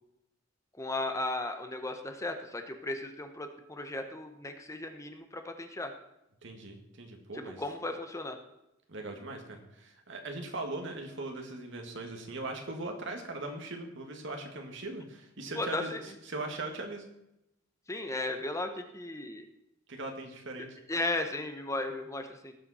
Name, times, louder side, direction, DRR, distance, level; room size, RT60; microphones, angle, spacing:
voice 1, 0.8-5.9 7.3-8.4 15.6-16.0 17.9-19.4 20.9-22.5, left 2 dB, 15° left, 6 dB, 1.0 m, -35 dB
voice 2, 6.4-7.6 8.9-17.0 19.9-20.8, right 2 dB, 65° right, 3 dB, 2.1 m, -40 dB
18.0 x 7.6 x 4.3 m, 0.87 s
head